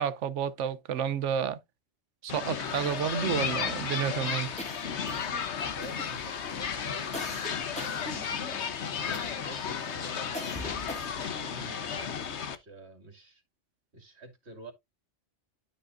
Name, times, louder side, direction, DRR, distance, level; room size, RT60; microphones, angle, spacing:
voice 1, 0.0-1.6 2.2-4.5, right 8 dB, 90° right, 1.1 m, -30 dB
sound 1, 2.3-12.6, left 7 dB, 70° left, 1.2 m, -34 dB
sound 2, 4.6-5.5 5.8-6.3 7.1-8.6 9.1-9.6 10.3-11.4, left 1 dB, 5° left, 1.9 m, -42 dB
voice 2, 5.6-13.4 13.9-14.7, right 2 dB, 65° right, 2.5 m, -49 dB
12.0 x 5.1 x 2.5 m
omnidirectional pair, 1.2 m